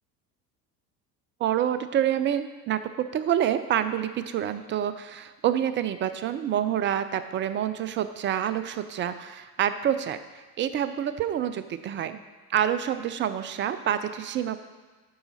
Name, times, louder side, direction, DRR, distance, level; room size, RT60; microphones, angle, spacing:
voice 1, 1.4-12.2 12.5-14.6, right 10 dB, 25° right, 12 dB, 0.4 m, -27 dB
9.3 x 5.7 x 4.1 m, 1.4 s
hypercardioid pair, 70°, 48 cm